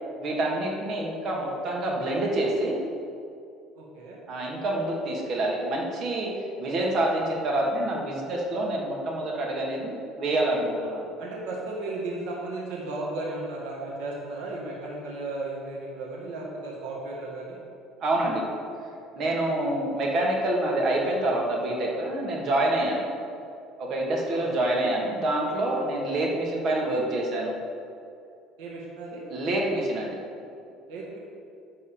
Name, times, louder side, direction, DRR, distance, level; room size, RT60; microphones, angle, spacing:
voice 1, 0.2-2.8 4.3-6.3 6.6-11.1 18.0-18.5 19.1-23.0 23.8-27.6 29.3-30.2, right 1 dB, 45° right, -2 dB, 2.0 m, -27 dB
voice 2, 3.7-4.2 11.2-17.6 24.3-24.5 28.6-29.2 30.9-31.2, right 2 dB, 85° right, -4 dB, 2.1 m, -35 dB
11.5 x 4.1 x 7.1 m, 2.6 s
cardioid pair, 150°, 0 cm